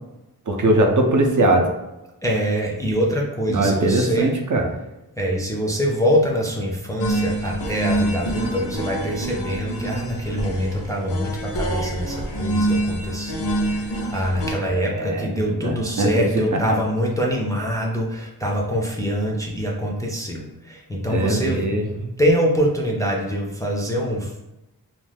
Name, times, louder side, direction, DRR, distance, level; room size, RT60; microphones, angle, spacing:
voice 1, 0.5-1.7 3.5-4.7 14.6-16.2 16.5-16.6 21.1-22.1, right 2 dB, 50° right, 2 dB, 0.5 m, -21 dB
voice 2, 2.2-4.3 5.2-21.6 22.2-24.5, equal, 10° left, -2 dB, 0.4 m, -24 dB
sound 1, 7.0-14.5, right 1 dB, 90° left, 0.6 m, -26 dB
2.4 x 2.2 x 3.3 m, 0.95 s
wide cardioid pair, 90°, 39 cm